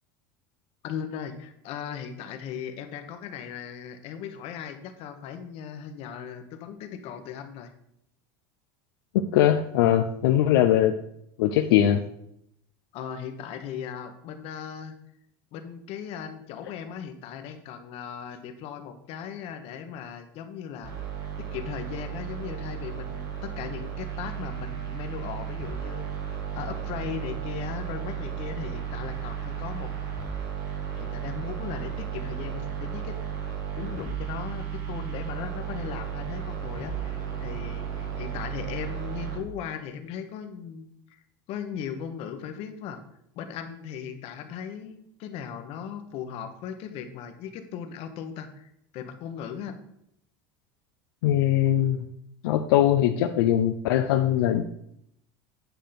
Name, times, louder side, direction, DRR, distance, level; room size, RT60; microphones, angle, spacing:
voice 1, 0.8-7.7 12.9-14.9 15.5-20.9 21.4-26.1 26.5-29.9 31.0-33.2 33.8-41.2 41.5-43.0 43.3-49.8, left 8 dB, 55° left, 8 dB, 1.2 m, -38 dB
voice 2, 9.1-11.0 11.4-12.0 51.2-52.0 52.4-54.6, left 11 dB, 85° left, 6 dB, 0.6 m, -21 dB
sound 1, 20.8-39.4, right 8 dB, 90° right, 4.2 m, -34 dB
9.3 x 5.1 x 5.8 m, 0.75 s
supercardioid pair, 130°, 12 cm